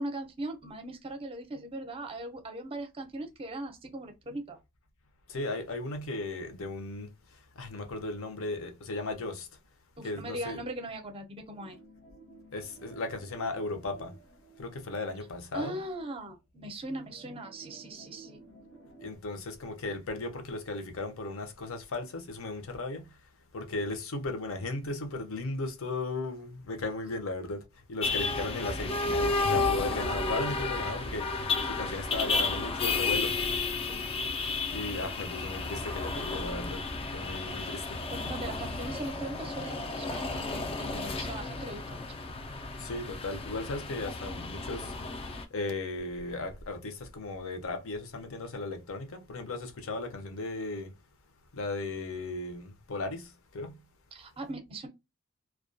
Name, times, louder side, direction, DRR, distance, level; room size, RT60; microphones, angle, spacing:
voice 1, 0.0-4.6 10.0-11.8 15.5-18.4 33.8-34.0 38.1-42.0 54.1-54.9, right 1 dB, 25° right, 0.5 m, -39 dB
voice 2, 5.3-7.1 7.6-9.5 10.0-10.6 12.5-14.2 14.6-15.8 19.0-23.1 23.5-27.6 27.9-33.3 34.7-36.8 37.1-38.0 42.8-50.9 51.5-53.8, left 2 dB, 65° left, 0.6 m, -36 dB
sound 1, 11.5-15.8 16.2-16.3 17.0-19.2, right 3 dB, 80° left, 1.0 m, -54 dB
sound 2, 28.0-45.4, left 3 dB, 25° left, 0.3 m, -32 dB
2.2 x 2.2 x 2.5 m
head